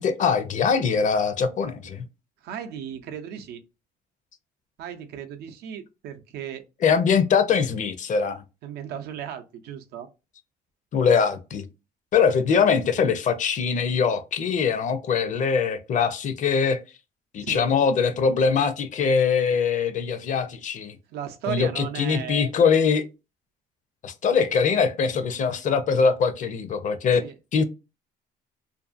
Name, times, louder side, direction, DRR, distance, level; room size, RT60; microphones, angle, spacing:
voice 1, 0.0-2.0 6.8-8.4 10.9-11.6 12.1-16.8 17.3-21.0 21.5-23.0 24.0-27.2 27.5-27.6, left 6 dB, 50° left, 0.6 m, -22 dB
voice 2, 2.4-3.6 4.8-6.6 8.6-10.1 17.4-17.7 21.1-22.5 27.2-27.3, right 8 dB, 75° right, 0.5 m, -35 dB
2.6 x 2.4 x 2.5 m
cardioid pair, 110°, 17 cm